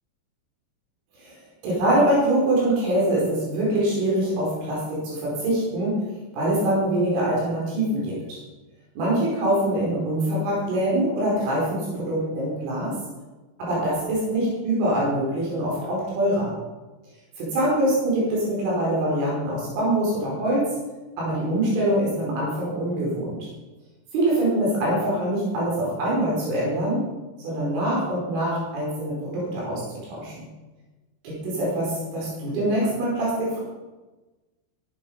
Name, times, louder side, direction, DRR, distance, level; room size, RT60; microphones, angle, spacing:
voice 1, 1.6-6.0 6.3-8.4 9.0-13.0 13.6-16.5 17.4-20.7 21.2-23.4 24.1-27.0 27.4-30.3 31.2-33.6, right 1 dB, 75° right, -6 dB, 7.7 m, -24 dB
14.0 x 12.0 x 5.7 m, 1.2 s
omnidirectional pair, 5.6 m